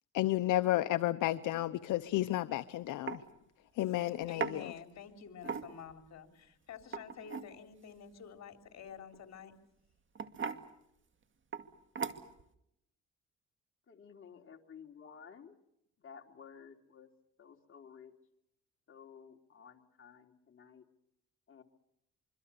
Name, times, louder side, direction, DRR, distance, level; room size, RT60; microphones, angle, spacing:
voice 1, 0.1-3.2 3.8-4.7, left 15 dB, 80° left, 0.9 m, -32 dB
sound 1, 2.4-2.6 3.1-3.2 4.4-4.6 5.4-5.9 6.8-7.5 9.1-9.4 10.1-10.6 11.5-11.7 12.0-12.4, right 6 dB, 40° right, 2.2 m, -38 dB
voice 2, 4.3-9.5, left 7 dB, 60° left, 3.5 m, -49 dB
voice 3, 13.9-15.6 16.0-17.1 17.4-18.1 18.9-20.9 21.5-21.6, left 6 dB, 45° left, 3.3 m, -54 dB
26.0 x 24.5 x 7.0 m
cardioid pair, 90°, 30 cm